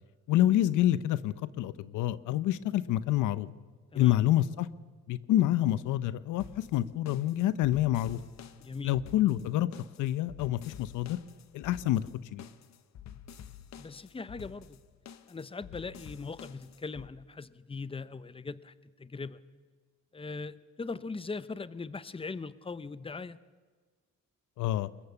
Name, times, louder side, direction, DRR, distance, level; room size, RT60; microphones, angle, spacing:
voice 1, 0.3-3.5 3.9-4.7 5.1-8.2 8.8-9.7 10.0-11.2 11.5-12.0 12.3-12.4 24.6-24.9, left 13 dB, 90° left, 16 dB, 0.8 m, -27 dB
sound 1, 6.4-17.1, left 8 dB, 65° left, 1.3 m, -49 dB
voice 2, 8.6-9.0 13.8-14.8 15.3-19.4 20.1-23.4, left 4 dB, 20° left, 16 dB, 0.9 m, -40 dB
22.5 x 20.5 x 7.1 m, 1.5 s
cardioid pair, 90°, 30 cm